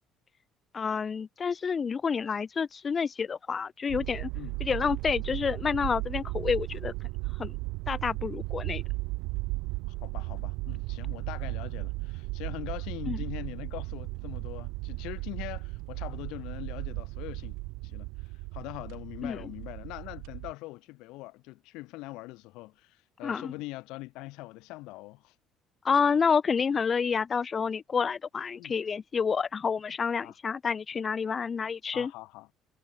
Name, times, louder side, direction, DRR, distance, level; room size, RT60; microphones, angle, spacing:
voice 1, 0.7-4.3 4.6-6.9 7.4-7.5 7.9-8.8 13.1-13.2 19.2-19.4 23.2-23.5 25.8-32.1, left 6 dB, 35° left, 0.4 m, -29 dB
sound 1, 3.9-20.5, right 25 dB, 85° right, 0.7 m, -36 dB
voice 2, 9.9-17.6 17.8-25.3 28.6-28.8 30.2-30.4 31.9-32.5, left 21 dB, 80° left, 5.3 m, -42 dB
supercardioid pair, 90°, 0 cm